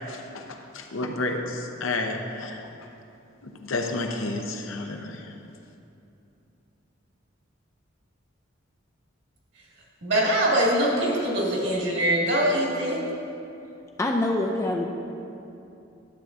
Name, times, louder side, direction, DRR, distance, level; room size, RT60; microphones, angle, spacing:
voice 1, 0.1-2.6 3.4-5.3, left 2 dB, 75° left, 3 dB, 0.7 m, -31 dB
voice 2, 10.0-13.0, right 1 dB, 60° right, -4 dB, 1.9 m, -23 dB
voice 3, 14.0-14.9, left 2 dB, 15° left, 1 dB, 0.4 m, -25 dB
12.0 x 7.4 x 2.6 m, 2.8 s
head